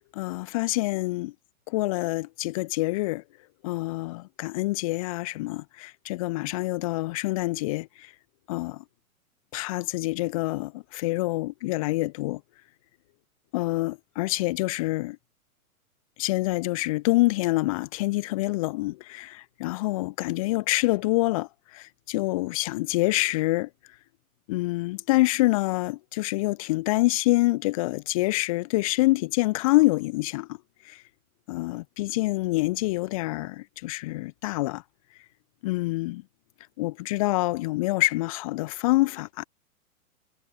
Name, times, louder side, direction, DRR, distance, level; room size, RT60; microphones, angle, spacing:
voice 1, 0.1-1.3 1.7-3.2 3.6-8.1 8.5-8.8 9.5-12.4 13.5-15.2 16.2-21.5 21.7-23.7 24.5-30.6 30.9-31.0 31.5-34.8 35.6-36.2 36.8-39.4, left 20 dB, 25° left, 0.5 m, -26 dB
figure-of-eight pair, 110°, 43 cm